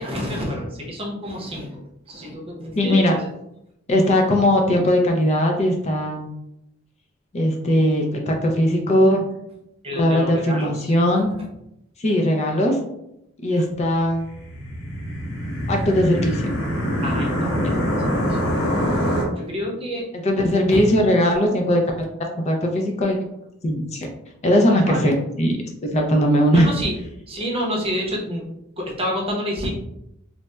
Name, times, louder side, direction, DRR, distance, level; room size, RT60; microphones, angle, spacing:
voice 1, 0.0-3.2 9.8-11.2 13.5-13.6 17.0-18.4 19.4-20.0 20.4-20.8 24.8-25.1 26.5-26.9 27.3-28.4 28.8-29.7, equal, 30° right, -2 dB, 0.7 m, -29 dB
voice 2, 2.8-3.2 3.9-6.3 7.3-9.2 9.9-11.3 12.0-12.8 13.4-14.3 15.7-16.5 20.2-22.1 22.4-23.2 23.6-24.1 24.4-25.6 25.8-26.7, equal, 30° left, 1 dB, 0.4 m, -19 dB
sound 1, 14.1-19.3, equal, 70° left, 1.2 m, -24 dB
3.9 x 2.1 x 2.2 m, 0.81 s
head